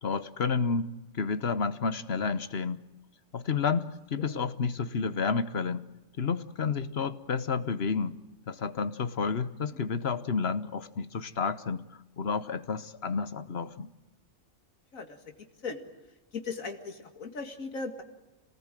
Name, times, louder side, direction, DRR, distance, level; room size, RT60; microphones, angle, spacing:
voice 1, 0.0-2.8 3.3-5.9 6.2-8.2 8.5-11.8 12.2-13.9, left 5 dB, 50° left, 14 dB, 1.3 m, -30 dB
voice 2, 4.1-4.5 14.9-15.8 16.3-18.0, left 4 dB, 85° left, 6 dB, 2.5 m, -38 dB
27.0 x 19.0 x 9.1 m, 1.0 s
omnidirectional pair, 1.4 m